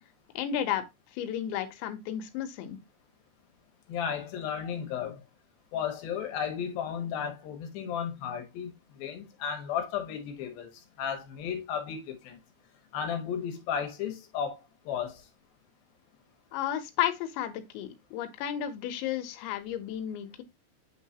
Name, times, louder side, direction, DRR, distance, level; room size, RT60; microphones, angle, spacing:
voice 1, 0.4-0.8 1.1-2.8 16.5-20.4, left 10 dB, 90° left, 3.2 m, -33 dB
voice 2, 3.9-5.2 5.7-10.7 11.0-12.4 12.9-14.6 14.9-15.2, left 8 dB, 65° left, 2.8 m, -34 dB
8.6 x 3.9 x 2.8 m
omnidirectional pair, 5.0 m